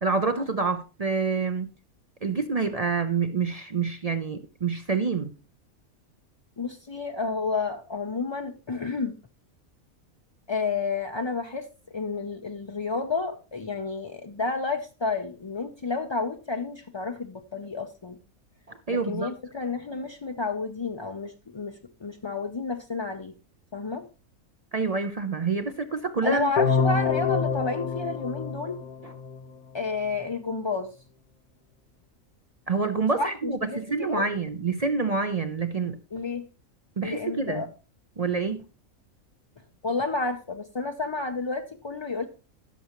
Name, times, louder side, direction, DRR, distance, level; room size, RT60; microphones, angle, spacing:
voice 1, 0.0-1.7 2.2-5.3 18.7-19.3 24.7-26.5 29.0-29.1 32.7-36.0 37.0-37.7 38.2-38.7, right 4 dB, 50° right, 0.4 m, -27 dB
voice 2, 6.6-9.2 10.5-11.7 11.9-18.2 18.9-23.3 23.7-24.1 26.2-28.8 29.7-30.9 33.2-34.2 36.1-36.5 37.0-37.7 39.8-42.3, left 4 dB, 40° left, 0.4 m, -31 dB
sound 1, 26.6-29.5, left 5 dB, 85° left, 1.4 m, -26 dB
16.0 x 6.8 x 3.0 m
omnidirectional pair, 1.4 m